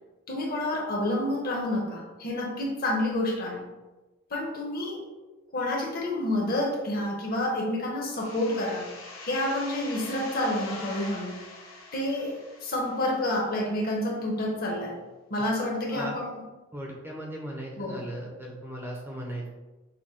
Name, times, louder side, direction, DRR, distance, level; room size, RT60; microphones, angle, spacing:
voice 1, 0.3-3.7 4.3-5.0 5.5-8.9 9.2-11.4 11.9-15.0 15.3-16.3 17.8-18.0, left 1 dB, 45° left, -1 dB, 0.9 m, -29 dB
sound 1, 8.2-13.7, left 3 dB, 75° left, 0.9 m, -44 dB
voice 2, 16.7-19.5, right 1 dB, 10° right, -1 dB, 0.6 m, -37 dB
5.9 x 2.1 x 3.7 m, 1.2 s
head